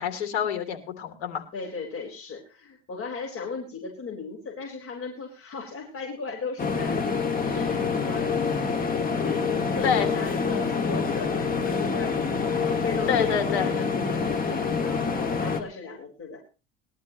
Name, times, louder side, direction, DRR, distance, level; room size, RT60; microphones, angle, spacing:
voice 1, 0.0-1.4 9.8-10.1 13.1-13.7, left 8 dB, 90° left, 6 dB, 3.2 m, -27 dB
voice 2, 1.5-16.4, left 5 dB, 45° left, 0 dB, 4.4 m, -37 dB
sound 1, 6.6-15.6, left 5 dB, 25° left, 2.1 m, -26 dB
20.5 x 12.5 x 3.1 m, 0.32 s
supercardioid pair, 110°, 32 cm